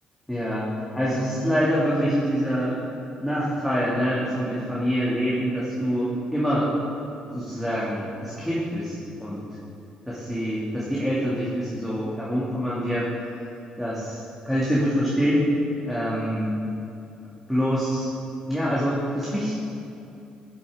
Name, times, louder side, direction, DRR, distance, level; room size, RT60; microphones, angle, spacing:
voice 1, 0.3-0.7 0.9-2.8 3.2-6.7 7.3-9.4 10.1-13.1 13.8-15.5 15.9-16.5 17.5-18.1 18.4-19.5, equal, ahead, -8 dB, 2.1 m, -25 dB
11.5 x 7.0 x 3.6 m, 2.7 s
supercardioid pair, 60°, 3 cm